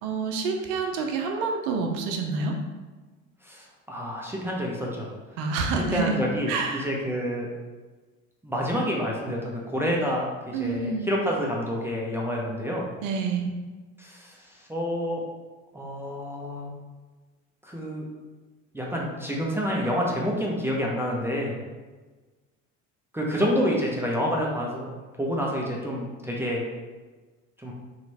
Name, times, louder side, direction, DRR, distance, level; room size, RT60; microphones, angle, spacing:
voice 1, 0.0-2.5 5.4-6.2 6.5-6.9 10.5-11.1 13.0-13.5, right 4 dB, 75° right, 3 dB, 0.8 m, -28 dB
voice 2, 3.4-5.1 5.8-7.5 8.4-12.9 14.0-15.2 15.7-16.7 17.6-18.1 18.7-21.5 23.1-24.9 25.1-26.6 27.6-27.7, equal, 5° right, -4 dB, 0.7 m, -28 dB
3.2 x 3.0 x 4.1 m, 1.3 s
hypercardioid pair, 75°, 37 cm